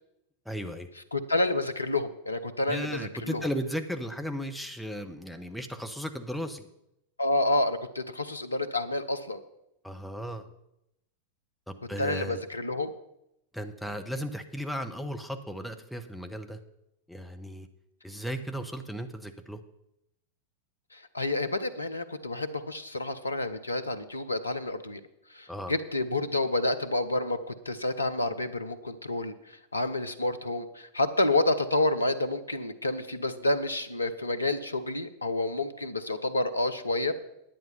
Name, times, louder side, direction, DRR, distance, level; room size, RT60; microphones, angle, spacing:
voice 1, 0.4-0.9 2.7-6.7 9.8-10.4 11.7-12.4 13.5-16.6 17.1-17.7 18.0-19.6 25.5-25.7, equal, ahead, 5 dB, 1.0 m, -35 dB
voice 2, 1.1-3.5 7.2-9.4 12.0-12.9 20.9-25.0 25.3-37.1, left 2 dB, 80° left, 10 dB, 0.8 m, -29 dB
10.5 x 9.2 x 5.5 m, 0.84 s
figure-of-eight pair, 90°, 0 cm